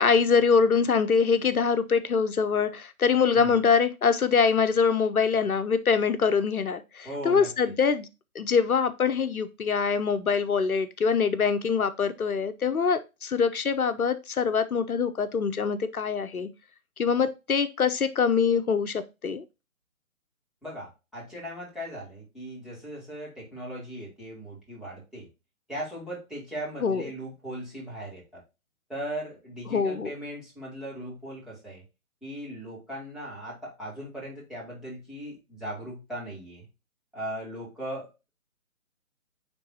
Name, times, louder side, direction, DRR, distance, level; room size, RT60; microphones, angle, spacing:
voice 1, 0.0-8.1 8.3-16.5 17.0-19.4 26.8-27.0 29.7-30.1, left 6 dB, 85° left, 0.8 m, -24 dB
voice 2, 7.0-7.7 20.6-25.3 25.7-28.4 28.9-31.8 32.2-36.7 37.1-38.3, equal, ahead, 2.5 m, -38 dB
9.8 x 3.5 x 2.8 m
figure-of-eight pair, 140°, 43 cm